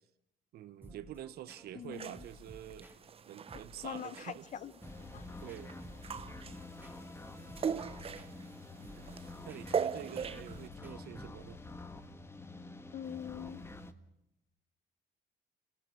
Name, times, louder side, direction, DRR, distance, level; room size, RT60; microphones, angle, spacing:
voice 1, 0.5-2.9 3.3-4.5 5.4-5.7 9.0-11.6, right 12 dB, 70° right, 1.2 m, -47 dB
sound 1, 0.8-11.7, equal, 10° right, 3.0 m, -56 dB
voice 2, 1.7-2.2 3.8-4.7 5.1-5.2 12.9-13.6, left 9 dB, 45° left, 0.9 m, -43 dB
sound 2, 1.9-10.7, right 7 dB, 35° right, 0.9 m, -41 dB
sound 3, 4.8-13.9, left 2 dB, 15° left, 1.6 m, -48 dB
27.0 x 17.5 x 8.5 m
cardioid pair, 110°, 17 cm